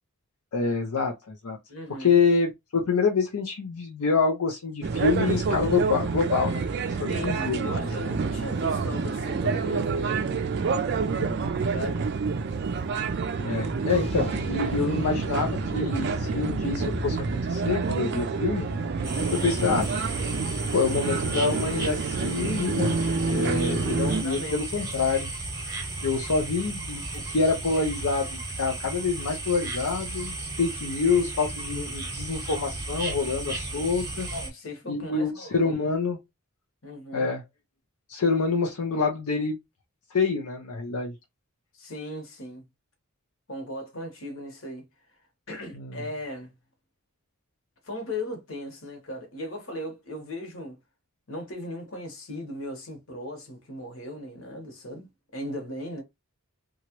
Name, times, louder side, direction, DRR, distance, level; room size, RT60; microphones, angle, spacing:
voice 1, 0.5-1.6 2.0-6.6 7.0-7.7 11.1-11.4 13.4-18.7 19.3-19.9 20.7-23.0 23.2-25.3 26.0-34.3 34.9-36.2 37.1-37.4 38.1-39.6 40.1-41.1 45.8-45.9, left 4 dB, 80° left, 0.6 m, -26 dB
voice 2, 1.7-2.2 7.1-10.2 11.7-12.1 19.1-19.5 24.0-24.9 34.3-35.7 36.8-37.3 41.7-42.6 43.5-44.9 45.5-46.5 47.8-50.8 51.3-56.0, left 1 dB, 60° left, 1.1 m, -37 dB
sound 1, 4.8-24.2, right 4 dB, 50° right, 0.3 m, -28 dB
sound 2, 11.8-13.0 13.9-27.6, left 2 dB, 25° left, 0.4 m, -41 dB
sound 3, 19.0-34.5, right 2 dB, 15° right, 0.9 m, -35 dB
2.9 x 2.3 x 2.9 m
head